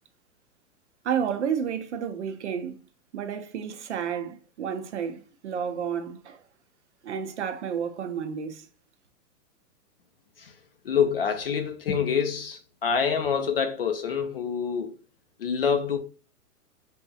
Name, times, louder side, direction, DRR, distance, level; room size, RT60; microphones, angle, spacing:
voice 1, 1.0-2.8 3.1-6.4 7.0-8.7, right 7 dB, 50° right, 0.5 m, -31 dB
voice 2, 10.8-14.9 15.4-16.0, left 6 dB, 40° left, 0.4 m, -26 dB
5.2 x 2.8 x 2.3 m
hypercardioid pair, 160°, 46 cm